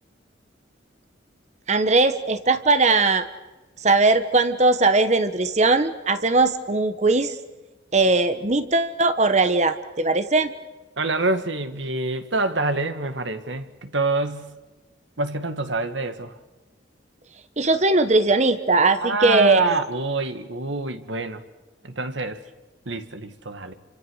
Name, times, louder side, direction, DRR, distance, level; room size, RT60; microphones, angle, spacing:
voice 1, 1.7-3.3 3.8-7.4 7.9-10.5 17.6-19.7, right 3 dB, 35° right, 11 dB, 1.2 m, -19 dB
voice 2, 11.0-14.5 15.2-16.4 19.0-21.4 21.8-22.4 22.9-23.7, right 2 dB, 80° right, 9 dB, 2.0 m, -26 dB
29.5 x 25.5 x 6.5 m, 1.1 s
head